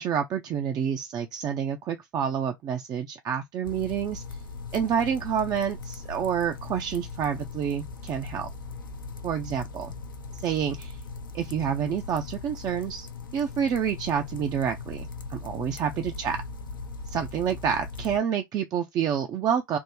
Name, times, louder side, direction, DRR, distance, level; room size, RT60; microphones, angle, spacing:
voice 1, 0.0-4.2 4.7-8.5 9.2-9.9 10.4-11.0 11.3-13.1 13.3-16.4 17.1-19.8, right 8 dB, 35° right, 0.5 m, -28 dB
sound 1, 3.6-18.2, left 3 dB, 80° left, 0.6 m, -39 dB
3.5 x 2.1 x 3.1 m
hypercardioid pair, 85°, 11 cm